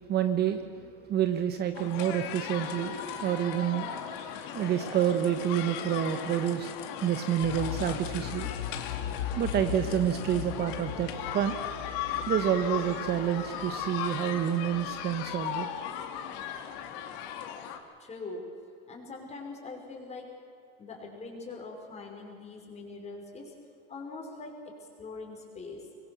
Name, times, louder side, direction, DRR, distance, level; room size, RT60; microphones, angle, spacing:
voice 1, 0.1-6.7 7.0-8.5 9.4-11.6 12.2-15.7, right 10 dB, 35° right, 8 dB, 1.2 m, -29 dB
sound 1, 1.7-17.8, left 9 dB, 65° left, 2.5 m, -37 dB
sound 2, 7.4-15.2 15.5-15.6, left 8 dB, 90° left, 2.9 m, -39 dB
voice 2, 18.0-18.5 18.9-20.3 20.8-23.5 23.9-24.6 25.0-25.9, left 3 dB, 20° left, 1 dB, 5.5 m, -42 dB
25.0 x 22.0 x 7.0 m, 2.3 s
supercardioid pair, 130°, 30 cm